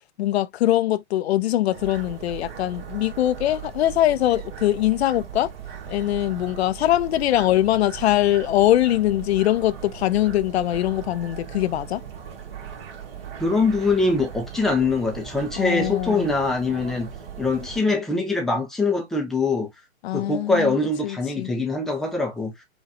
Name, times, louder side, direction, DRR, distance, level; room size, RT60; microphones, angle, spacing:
voice 1, 0.2-5.5 5.9-12.0 15.6-16.3 20.0-20.8 21.0-21.5, left 13 dB, 65° left, 0.5 m, -22 dB
sound 1, 1.7-17.8, right 8 dB, 55° right, 1.5 m, -38 dB
voice 2, 13.4-17.1 17.4-19.7 20.1-22.5, left 3 dB, ahead, 0.3 m, -23 dB
5.0 x 2.3 x 2.7 m
hypercardioid pair, 125°, 35 cm